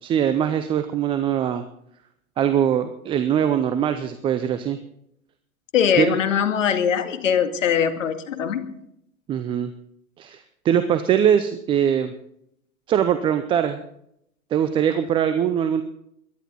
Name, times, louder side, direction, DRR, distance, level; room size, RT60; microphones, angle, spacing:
voice 1, 0.0-1.6 2.4-4.8 6.0-6.1 9.3-9.7 10.2-12.1 12.9-13.8 14.5-15.8, right 9 dB, 15° right, 10 dB, 0.5 m, -22 dB
voice 2, 5.7-8.8, left 8 dB, 65° left, 8 dB, 2.2 m, -21 dB
22.0 x 11.5 x 4.1 m, 0.74 s
hypercardioid pair, 115°, 41 cm